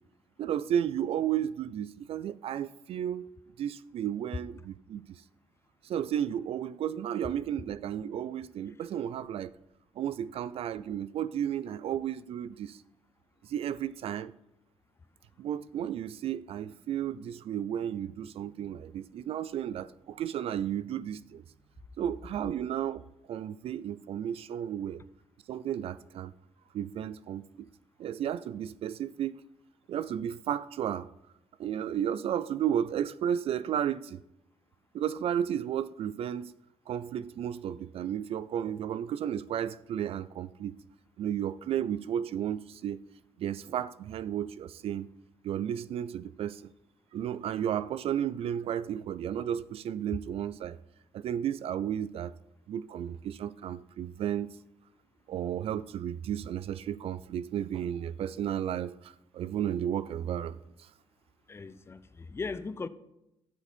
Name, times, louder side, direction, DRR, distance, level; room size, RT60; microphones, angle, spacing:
voice 1, 0.4-3.3 3.6-5.2 5.8-9.5 10.0-12.8 13.4-14.3 15.4-21.4 22.0-23.0 23.3-25.0 25.5-26.3 26.7-27.7 28.0-29.4 29.9-31.1 31.6-34.2 34.9-36.5 36.9-40.8 41.2-43.0 43.4-45.1 45.4-46.7 47.1-50.8 51.1-52.3 52.7-54.6 55.3-60.9, right 10 dB, 60° right, 0.4 m, -33 dB
voice 2, 61.5-62.9, left 4 dB, 20° left, 0.6 m, -38 dB
12.0 x 7.0 x 4.3 m
cardioid pair, 110°, 11 cm